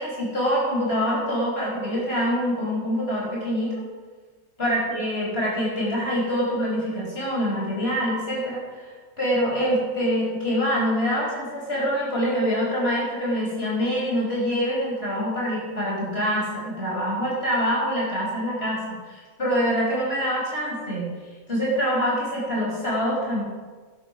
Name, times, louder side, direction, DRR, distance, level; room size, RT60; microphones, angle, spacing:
voice 1, 0.0-3.7 4.6-21.1 21.5-23.4, equal, 40° left, -4 dB, 6.0 m, -25 dB
12.5 x 11.0 x 6.1 m, 1.4 s
omnidirectional pair, 1.6 m